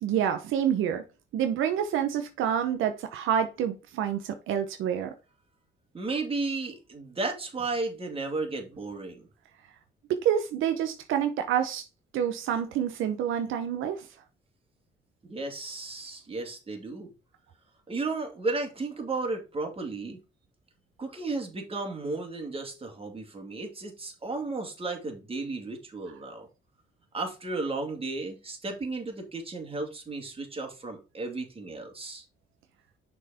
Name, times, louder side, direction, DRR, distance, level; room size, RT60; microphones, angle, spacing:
voice 1, 0.0-1.0 1.3-5.1 10.1-11.8 12.1-14.1, right 9 dB, 85° right, 0.9 m, -28 dB
voice 2, 5.9-9.2 15.2-17.1 17.9-20.2 21.0-26.5 27.1-32.2, right 3 dB, 30° right, 2.6 m, -34 dB
6.5 x 4.6 x 4.2 m
cardioid pair, 90°, 20 cm